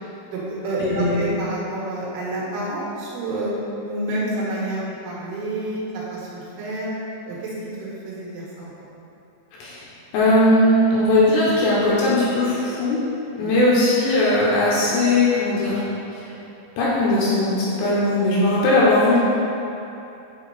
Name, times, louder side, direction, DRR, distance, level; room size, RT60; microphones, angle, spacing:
voice 1, 0.3-3.5 3.8-6.9 7.3-8.7 13.4-13.6, right 1 dB, 85° right, -6 dB, 3.7 m, -29 dB
voice 2, 0.8-1.2 9.6-9.8 10.1-13.0 13.4-15.8 16.8-19.2, left 1 dB, 75° left, -7 dB, 2.9 m, -19 dB
8.5 x 3.6 x 4.0 m, 2.8 s
omnidirectional pair, 5.4 m